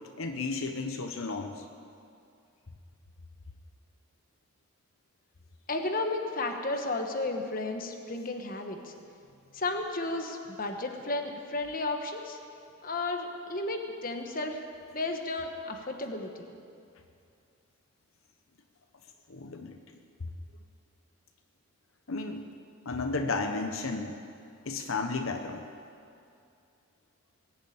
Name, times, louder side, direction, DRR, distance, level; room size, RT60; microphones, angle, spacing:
voice 1, 0.2-1.6 19.3-19.8 22.1-22.4 22.9-24.2 24.7-25.7, left 3 dB, 75° left, 5 dB, 0.9 m, -33 dB
voice 2, 5.7-8.9 9.5-12.4 12.8-14.6 14.9-16.3, left 2 dB, 40° left, 4 dB, 1.2 m, -33 dB
20.5 x 7.3 x 8.7 m, 2.4 s
head